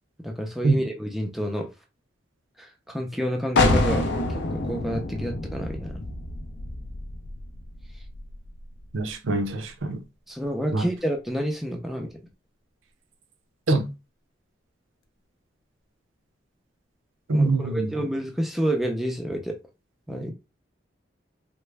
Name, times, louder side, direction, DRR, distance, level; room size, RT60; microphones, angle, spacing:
voice 1, 0.2-1.7 2.6-4.0 4.4-6.0 10.3-12.1 17.3-19.6 20.1-20.3, equal, ahead, 0.5 m, -29 dB
sound 1, 3.6-9.1, left 2 dB, 60° left, 0.5 m, -27 dB
voice 2, 8.9-10.0 10.7-10.9 13.7-13.9 17.3-17.9, right 2 dB, 85° right, 0.6 m, -24 dB
3.5 x 2.1 x 3.3 m
head